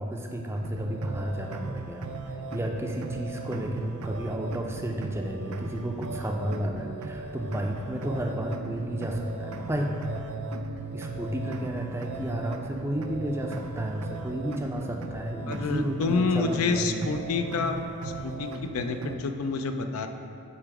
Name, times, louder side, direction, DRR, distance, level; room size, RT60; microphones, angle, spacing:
voice 1, 0.0-2.1 2.5-10.0 10.9-17.0, right 1 dB, 10° right, 1 dB, 0.4 m, -32 dB
sound 1, 0.6-19.2, right 3 dB, 85° right, 0.4 m, -38 dB
voice 2, 15.5-17.8 18.0-20.1, left 4 dB, 85° left, 6 dB, 0.4 m, -28 dB
8.4 x 3.0 x 4.7 m, 2.6 s
head